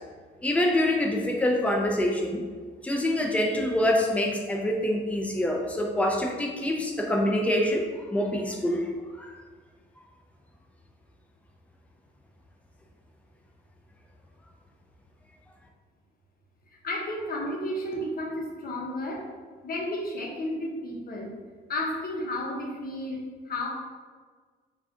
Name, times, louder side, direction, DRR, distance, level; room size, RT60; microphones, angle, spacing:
voice 1, 0.4-2.4 2.8-8.9 9.2-9.4, left 1 dB, 5° left, 1 dB, 0.4 m, -25 dB
voice 2, 16.8-19.2 19.6-21.3 21.7-23.7, left 1 dB, 50° left, -1 dB, 0.8 m, -32 dB
2.6 x 2.4 x 3.4 m, 1.5 s
cardioid pair, 90°, 20 cm